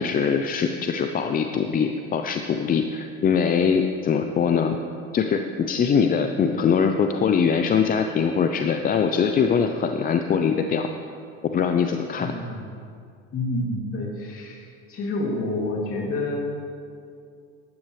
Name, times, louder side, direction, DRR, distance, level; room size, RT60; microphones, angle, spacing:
voice 1, 0.0-4.8 5.1-10.9 11.5-12.3, left 6 dB, 30° left, 6 dB, 0.5 m, -22 dB
voice 2, 12.2-12.7 13.3-16.4, left 2 dB, 45° left, -1 dB, 2.7 m, -29 dB
13.0 x 10.5 x 3.2 m, 2.4 s
supercardioid pair, 95°, 31 cm